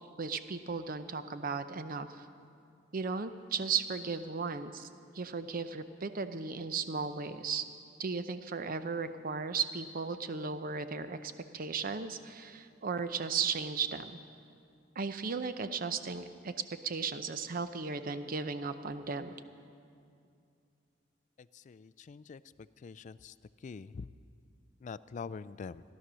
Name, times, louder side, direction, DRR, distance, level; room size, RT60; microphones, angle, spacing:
voice 1, 0.2-2.2 2.9-4.9 5.1-7.7 8.0-14.2 15.0-16.5 16.8-19.3, right 5 dB, 50° right, 11 dB, 0.6 m, -36 dB
voice 2, 21.7-22.4 22.8-23.3 23.6-24.1 24.8-25.8, left 5 dB, 40° left, 16 dB, 0.3 m, -44 dB
15.5 x 11.5 x 6.2 m, 2.5 s
head